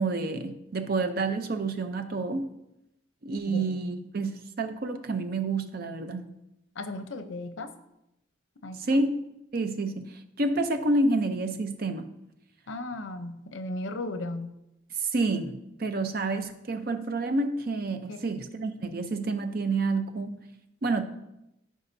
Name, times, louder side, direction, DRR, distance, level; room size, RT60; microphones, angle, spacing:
voice 1, 0.0-2.5 3.2-6.3 8.7-9.1 9.5-12.1 15.0-20.4 20.8-21.0, right 2 dB, 50° right, 8 dB, 0.6 m, -29 dB
voice 2, 6.8-7.7 8.6-9.0 12.7-14.5 18.1-18.2, left 2 dB, 80° left, 9 dB, 0.7 m, -36 dB
14.0 x 4.9 x 2.7 m, 0.87 s
head